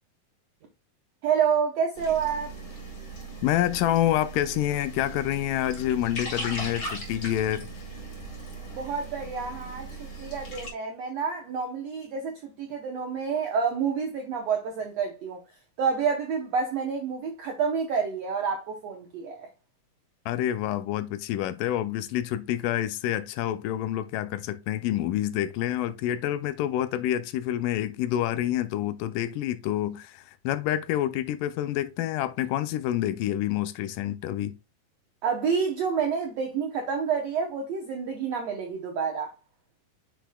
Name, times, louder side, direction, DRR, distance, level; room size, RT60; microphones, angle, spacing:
voice 1, 1.2-2.5 8.7-15.4 15.8-19.5 35.2-39.3, right 6 dB, 75° right, 1.6 m, -28 dB
sound 1, 2.0-10.7, right 2 dB, 30° left, 2.6 m, -38 dB
voice 2, 3.4-7.7 20.3-34.5, left 12 dB, 80° left, 2.0 m, -28 dB
8.3 x 5.9 x 2.2 m
omnidirectional pair, 4.1 m